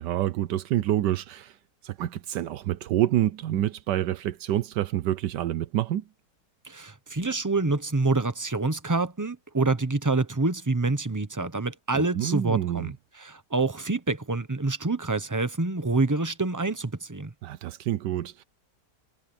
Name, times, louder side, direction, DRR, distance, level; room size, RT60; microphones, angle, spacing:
voice 1, 0.0-1.5 1.8-6.0 11.9-12.9 17.4-18.4, right 12 dB, 80° right, 1.3 m, -27 dB
voice 2, 6.6-17.3, right 3 dB, 15° right, 0.7 m, -27 dB
omnidirectional pair, 1.8 m